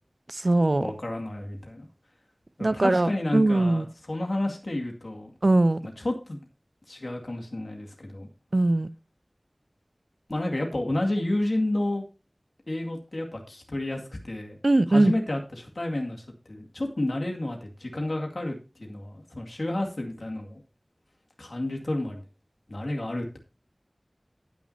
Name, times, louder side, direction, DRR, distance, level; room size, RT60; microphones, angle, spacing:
voice 1, 0.3-0.9 2.6-3.8 5.4-5.8 8.5-8.9 14.6-15.1, right 2 dB, 65° right, 0.7 m, -21 dB
voice 2, 0.8-1.9 2.6-5.3 5.8-6.4 6.9-8.3 10.3-12.0 12.7-14.6 14.9-20.6 21.4-22.2 22.7-23.4, left 1 dB, 75° left, 2.2 m, -31 dB
18.0 x 6.2 x 2.8 m
wide cardioid pair, 40°, 0 cm